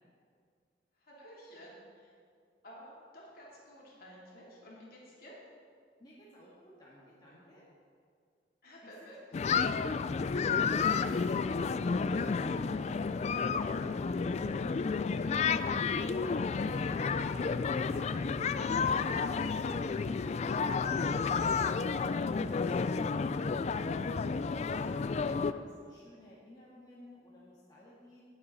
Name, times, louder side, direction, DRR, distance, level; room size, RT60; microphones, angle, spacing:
voice 1, 0.9-2.1 2.6-5.4 8.6-9.2 25.2-25.6, equal, 55° left, -5 dB, 3.2 m, -52 dB
voice 2, 6.0-7.6 8.8-8.9 9.3-9.4 10.7-12.8 13.2-14.9 15.2-16.5 17.0-21.1 21.7-23.4 23.8-25.4 25.8-28.2, equal, 25° left, -7 dB, 1.7 m, -56 dB
sound 1, 9.3-25.5, left 5 dB, 40° left, 0.3 m, -31 dB
18.5 x 7.1 x 4.0 m, 2.1 s
head